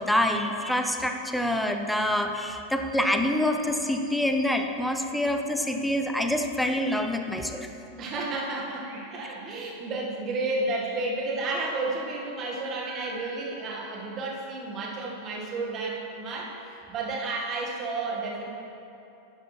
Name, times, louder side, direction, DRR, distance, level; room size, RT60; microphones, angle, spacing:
voice 1, 0.0-7.7, left 1 dB, ahead, 4 dB, 0.6 m, -26 dB
voice 2, 8.0-18.5, right 2 dB, 30° right, -1 dB, 1.7 m, -32 dB
sound 1, 8.8-10.0 10.6-11.8 12.8-14.3, right 2 dB, 50° right, 1.8 m, -49 dB
11.0 x 10.0 x 3.3 m, 2.8 s
figure-of-eight pair, 90°, 0 cm